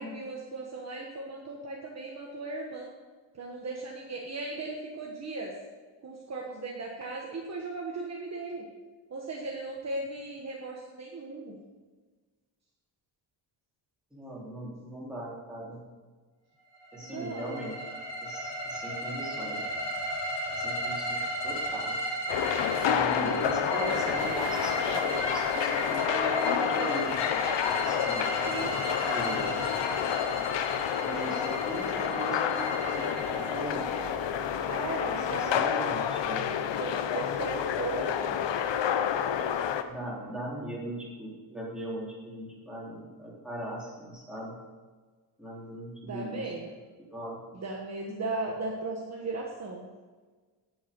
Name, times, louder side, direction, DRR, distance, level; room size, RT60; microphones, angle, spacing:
voice 1, 0.0-2.9 3.3-5.5 6.0-8.6 9.1-11.6 17.0-17.6 28.4-28.8 34.7-35.8 36.8-38.5 46.0-46.7 47.5-49.9, right 3 dB, 35° right, -1 dB, 1.4 m, -37 dB
voice 2, 14.1-15.8 16.9-17.9 18.2-19.7 20.5-22.0 22.8-28.3 29.1-29.5 31.0-33.9 35.1-36.5 39.9-44.6 45.4-46.5 47.1-47.4, right 1 dB, ahead, -6 dB, 3.7 m, -39 dB
sound 1, 16.8-34.6, right 1 dB, 85° left, 4.0 m, -35 dB
sound 2, 22.3-39.8, left 8 dB, 70° left, 0.9 m, -29 dB
18.5 x 7.9 x 5.4 m, 1.4 s
wide cardioid pair, 175°, 45 cm